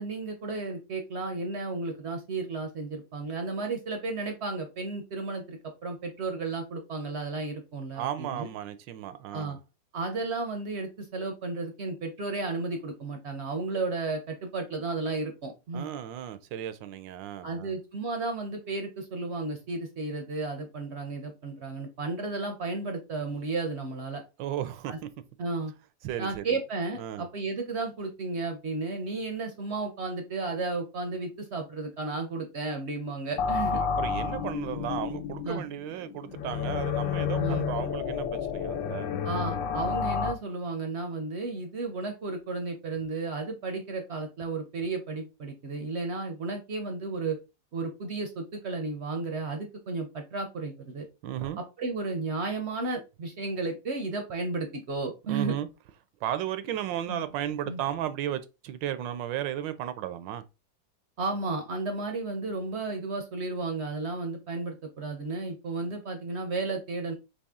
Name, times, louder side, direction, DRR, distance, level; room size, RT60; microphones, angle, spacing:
voice 1, 0.0-8.5 9.3-9.6 9.9-15.9 17.4-24.2 24.9-25.0 25.4-25.7 26.2-33.8 35.4-35.6 37.4-37.7 39.2-47.4 47.7-51.1 51.8-55.5 57.1-57.2 57.7-57.8 61.2-67.1, right 3 dB, 60° right, 0.7 m, -33 dB
voice 2, 7.9-9.6 15.7-17.7 24.4-25.1 26.0-26.6 27.0-27.3 33.3-33.5 34.0-39.2 51.2-51.6 55.3-55.7 56.2-60.4, right 11 dB, 80° right, 1.3 m, -34 dB
sound 1, 33.4-40.3, left 6 dB, 80° left, 1.3 m, -30 dB
4.1 x 3.0 x 3.5 m
omnidirectional pair, 2.0 m